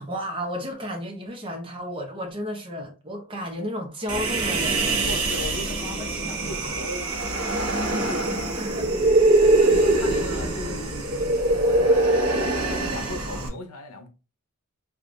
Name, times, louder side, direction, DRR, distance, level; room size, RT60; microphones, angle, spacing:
voice 1, 0.0-5.1 5.8-6.7 8.5-8.9 9.4-9.7, equal, 25° right, 0.7 m, -33 dB
Human voice, 4.1-13.5, right 2 dB, 90° right, 0.9 m, -23 dB
voice 2, 5.0-7.2 7.9-8.3 9.6-12.2 12.6-14.1, left 2 dB, 90° left, 0.7 m, -37 dB
4.8 x 2.4 x 2.5 m
head